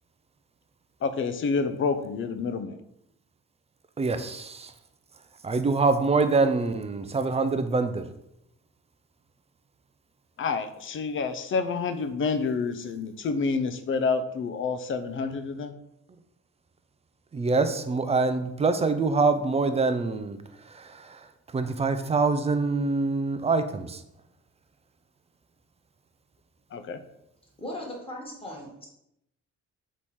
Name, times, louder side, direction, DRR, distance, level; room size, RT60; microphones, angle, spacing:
voice 1, 1.0-2.8 10.4-15.7 26.7-27.0, left 4 dB, 45° left, 10 dB, 0.5 m, -28 dB
voice 2, 4.0-4.7 5.4-8.0 17.3-20.4 20.7-21.2 21.5-24.0, right 3 dB, 20° right, 9 dB, 0.4 m, -25 dB
voice 3, 27.6-28.9, left 1 dB, 20° left, -2 dB, 1.4 m, -38 dB
3.5 x 3.0 x 4.2 m, 0.80 s
cardioid pair, 90°, 30 cm